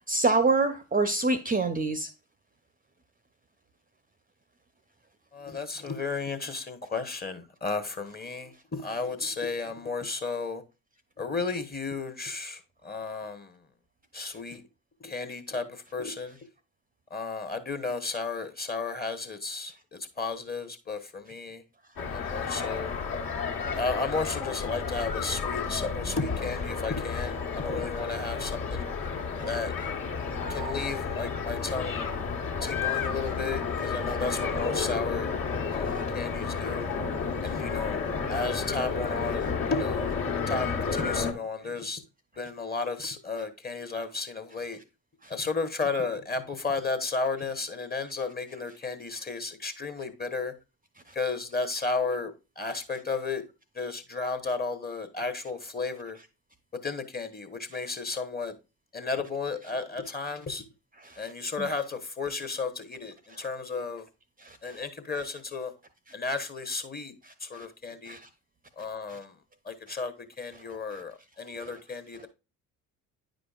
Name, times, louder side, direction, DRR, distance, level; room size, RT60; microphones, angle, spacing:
voice 1, 0.1-2.1 26.1-26.2 61.0-61.2 61.6-61.7 64.4-64.8 67.5-67.7 68.1-68.2 69.1-69.2, right 3 dB, 20° right, 0.7 m, -26 dB
voice 2, 5.3-10.6 11.2-13.6 14.1-14.6 15.0-16.4 17.1-21.6 22.1-22.9 23.7-28.9 29.5-29.7 30.5-32.1 32.6-35.3 35.7-36.9 37.4-38.0 38.3-42.0 42.4-44.8 45.3-50.5 51.1-53.4 53.7-56.2 56.8-58.6 58.9-60.7 61.2-64.1 64.6-65.7 66.1-67.1 67.4-68.2 68.8-69.3 69.6-72.3, left 4 dB, 20° left, 1.1 m, -33 dB
sound 1, 22.0-41.3, left 5 dB, 50° left, 1.5 m, -31 dB
9.6 x 5.1 x 2.4 m
hypercardioid pair, 50°, 42 cm